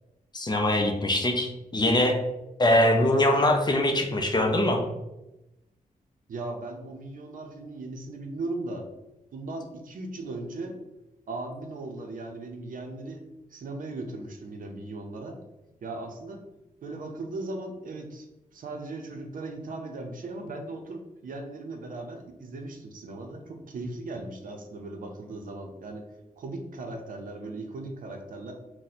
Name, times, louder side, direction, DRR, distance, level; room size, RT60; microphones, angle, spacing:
voice 1, 0.3-2.2 2.6-4.8, left 1 dB, 30° left, 3 dB, 0.5 m, -22 dB
voice 2, 6.3-8.9 9.3-10.8 11.3-13.2 13.5-15.4 15.8-16.4 16.8-18.3 18.5-26.1 26.4-28.5, right 2 dB, 75° right, 3 dB, 0.5 m, -37 dB
2.7 x 2.1 x 4.0 m, 0.95 s
wide cardioid pair, 100°, 14 cm